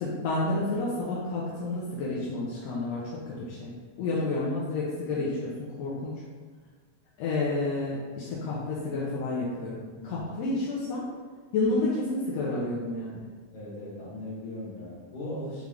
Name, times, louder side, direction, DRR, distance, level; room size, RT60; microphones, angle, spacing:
voice 1, 0.0-3.7 4.0-6.1 7.2-9.8 10.0-11.0 11.5-13.3, left 2 dB, 80° left, -6 dB, 1.6 m, -30 dB
voice 2, 13.5-15.6, left 1 dB, 60° left, -6 dB, 1.9 m, -38 dB
5.2 x 2.4 x 3.2 m, 1.5 s
omnidirectional pair, 3.3 m